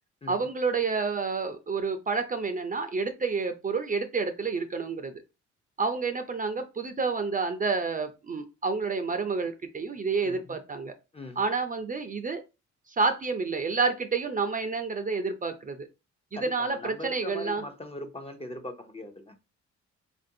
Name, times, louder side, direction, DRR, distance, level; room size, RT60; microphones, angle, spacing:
voice 1, 0.3-5.1 5.8-10.9 11.4-12.4 12.9-15.9 16.3-17.6, right 4 dB, 30° right, 0.5 m, -29 dB
voice 2, 10.2-10.6 11.1-11.4 16.3-19.4, left 2 dB, 20° left, 0.5 m, -40 dB
3.7 x 2.6 x 2.6 m
cardioid pair, 90°, 30 cm